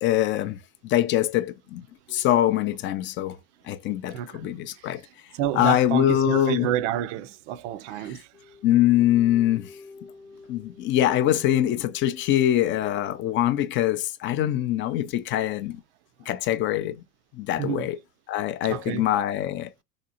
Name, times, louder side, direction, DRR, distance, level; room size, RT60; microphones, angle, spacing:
voice 1, 0.0-3.4 3.7-5.0 5.5-6.7 8.6-9.7 10.5-15.8 16.3-17.0 17.4-18.0 18.3-19.8, left 12 dB, 25° left, 0.4 m, -23 dB
voice 2, 4.1-4.5 4.7-4.9 5.3-8.3 17.6-17.9 18.6-19.1, right 11 dB, 50° right, 0.5 m, -29 dB
sound 1, 8.3-13.4, left 4 dB, 85° left, 0.9 m, -49 dB
3.9 x 2.9 x 2.5 m
figure-of-eight pair, 75°, 47 cm